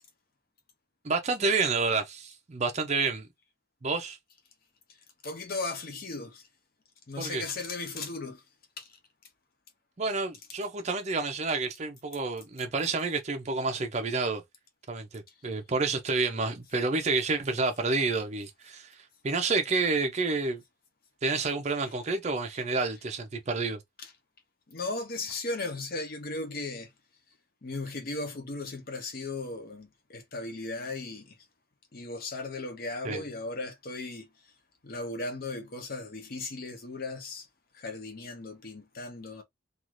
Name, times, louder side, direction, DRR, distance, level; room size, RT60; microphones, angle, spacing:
voice 1, 1.0-3.3 3.8-4.2 7.2-7.4 10.0-14.4 14.9-18.9 19.2-20.6 21.2-23.8 33.0-33.2, right 3 dB, 35° right, 0.5 m, -29 dB
voice 2, 5.2-6.5 7.1-8.4 8.8-9.0 24.0-24.1 24.7-26.9 27.6-31.4 31.9-34.5 34.8-37.5 37.7-39.4, left 3 dB, 45° left, 0.7 m, -36 dB
2.5 x 2.4 x 3.0 m
head